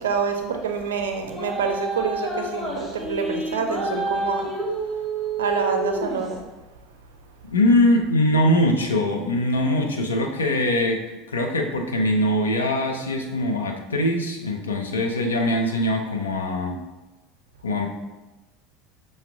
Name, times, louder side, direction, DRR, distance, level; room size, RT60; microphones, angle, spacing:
voice 1, 0.0-4.5 5.4-6.4, right 5 dB, 75° right, 4 dB, 0.4 m, -27 dB
sound 1, 1.3-6.3, right 2 dB, 25° left, 1.4 m, -29 dB
voice 2, 7.4-16.8 17.6-17.9, left 1 dB, 80° left, 3 dB, 0.4 m, -22 dB
5.6 x 2.1 x 3.4 m, 1.1 s
figure-of-eight pair, 70°, 0 cm